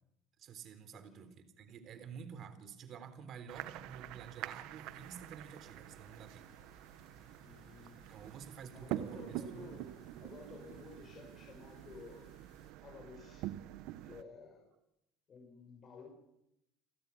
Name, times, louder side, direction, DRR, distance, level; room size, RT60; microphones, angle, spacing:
voice 1, 0.4-6.5 7.8-9.7, right 7 dB, 50° right, 11 dB, 3.7 m, -50 dB
voice 2, 0.9-1.2 7.4-8.1 8.7-12.3 12.8-13.5 14.0-14.7 15.3-16.1, left 4 dB, 35° left, 1 dB, 6.2 m, -53 dB
sound 1, 3.5-14.2, right 14 dB, 70° right, 1.3 m, -46 dB
sound 2, 4.8-12.7, left 9 dB, 60° left, 4.0 m, -66 dB
29.5 x 12.5 x 9.9 m, 0.85 s
supercardioid pair, 110°, 0 cm